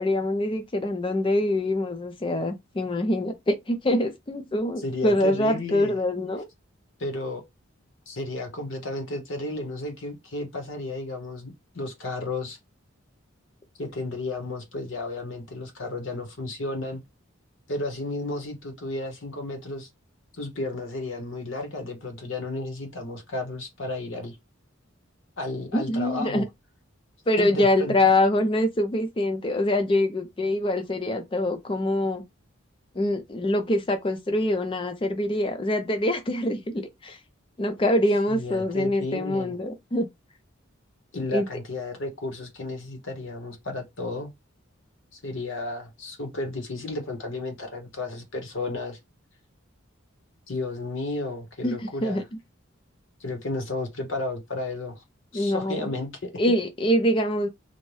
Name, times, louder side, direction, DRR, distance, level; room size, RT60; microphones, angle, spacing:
voice 1, 0.0-6.5 25.7-26.4 27.3-32.2 33.0-37.2 37.6-40.1 41.3-41.5 51.6-52.2 55.3-55.9 56.4-57.5, left 1 dB, 25° left, 0.4 m, -24 dB
voice 2, 4.8-6.0 7.0-7.4 8.1-12.6 13.8-17.0 17.7-19.9 20.3-24.4 25.4-26.5 27.4-28.0 38.3-39.6 41.1-44.3 45.1-49.0 50.5-52.2 53.2-55.0 55.3-56.4, left 2 dB, 65° left, 0.8 m, -33 dB
2.6 x 2.1 x 3.1 m
head